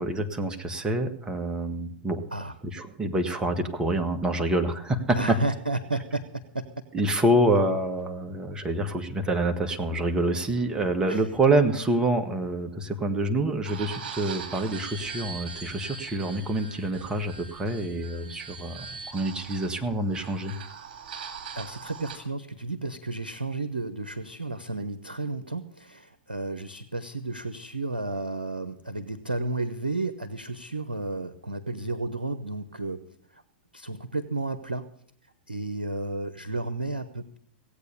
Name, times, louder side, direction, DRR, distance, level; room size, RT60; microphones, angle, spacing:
voice 1, 0.0-2.2 2.7-5.4 6.9-20.5, right 1 dB, 15° right, 6 dB, 1.6 m, -26 dB
voice 2, 5.1-6.6 11.1-11.3 21.5-33.0 33.3-33.4 33.7-34.9 35.5-37.4, right 2 dB, 90° right, 11 dB, 0.8 m, -32 dB
sound 1, 13.6-22.2, right 6 dB, 55° right, 3.0 m, -41 dB
17.0 x 8.5 x 6.9 m, 0.63 s
figure-of-eight pair, 100°, 5 cm